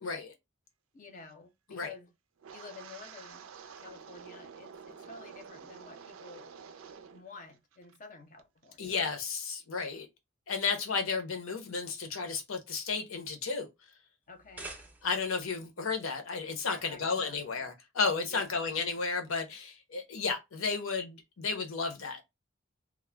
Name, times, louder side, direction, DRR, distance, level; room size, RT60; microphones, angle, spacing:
voice 1, 0.0-0.3 1.7-1.9 8.8-10.1 10.5-13.7 15.0-22.2, left 4 dB, 75° left, 0.7 m, -33 dB
voice 2, 0.9-2.1 2.5-3.5 3.8-6.5 7.1-9.0 14.3-14.7 16.7-17.4 18.2-18.7, left 4 dB, 40° left, 0.6 m, -50 dB
Wind, 2.4-7.3 7.5-8.0 8.4-8.7, right 6 dB, 80° right, 0.4 m, -49 dB
sound 1, 14.3-15.4, right 2 dB, 10° right, 0.4 m, -46 dB
2.3 x 2.1 x 3.2 m
head